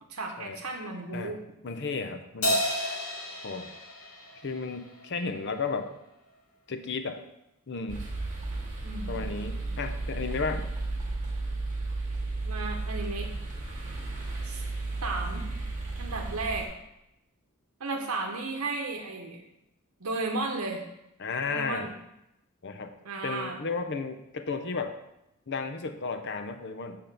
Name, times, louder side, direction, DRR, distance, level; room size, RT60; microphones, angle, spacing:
voice 1, 0.1-1.4 8.8-9.1 12.5-13.3 14.4-14.6 15.0-15.4 16.0-16.6 17.8-19.4 20.0-20.8 21.5-21.9 23.0-23.6, right 3 dB, 80° right, 1 dB, 0.9 m, -34 dB
voice 2, 1.6-2.6 3.4-3.7 4.4-5.9 6.7-7.2 7.7-8.1 9.1-10.7 21.2-21.9 22.6-22.9 23.2-24.9 25.5-27.0, left 4 dB, 55° left, 8 dB, 0.7 m, -33 dB
Crash cymbal, 2.4-5.1, equal, 75° left, 1.5 m, -31 dB
sound 1, 7.9-16.7, right 2 dB, 35° right, 1.9 m, -34 dB
7.8 x 3.7 x 6.7 m, 0.87 s
head